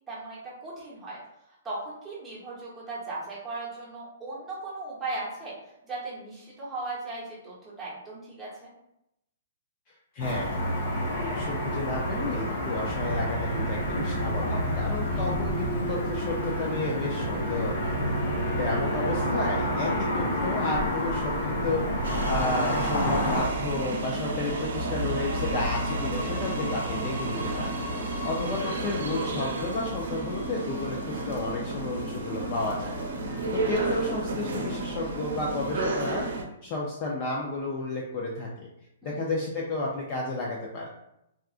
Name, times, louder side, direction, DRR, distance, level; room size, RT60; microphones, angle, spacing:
voice 1, 0.1-1.2 1.6-5.5 5.8-8.7 15.0-15.2 39.0-39.2, right 2 dB, 5° right, -9 dB, 0.9 m, -37 dB
voice 2, 10.1-10.6 11.2-18.0 18.6-27.7 28.2-32.9 33.5-36.3 36.6-38.7 39.0-40.9, left 2 dB, 25° left, -3 dB, 0.3 m, -32 dB
Car passing by / Traffic noise roadway noise, 10.2-23.5, equal, 40° left, 0.7 m, -28 dB
sound 1, 22.0-36.4, right 2 dB, 70° right, 0.6 m, -31 dB
3.6 x 2.3 x 2.4 m, 0.83 s
hypercardioid pair, 175°, 0 cm